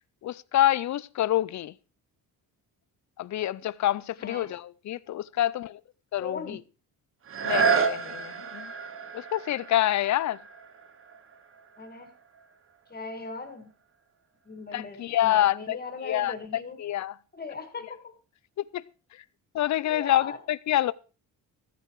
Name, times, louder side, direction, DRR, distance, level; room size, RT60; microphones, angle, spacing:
voice 1, 0.2-1.7 3.2-5.8 6.1-6.4 7.4-8.7 9.1-10.4 14.7-15.8 16.0-16.3 16.8-17.1 18.7-18.8 19.5-20.9, left 13 dB, 50° left, 0.5 m, -26 dB
voice 2, 4.2-4.5 6.2-6.6 11.8-12.1 12.9-13.7 14.4-16.8 17.3-18.1 19.8-20.4, left 4 dB, 25° left, 1.9 m, -38 dB
sound 1, 7.2-12.9 13.5-13.6, right 6 dB, 35° right, 0.9 m, -31 dB
14.5 x 9.9 x 4.7 m
cardioid pair, 150°, 38 cm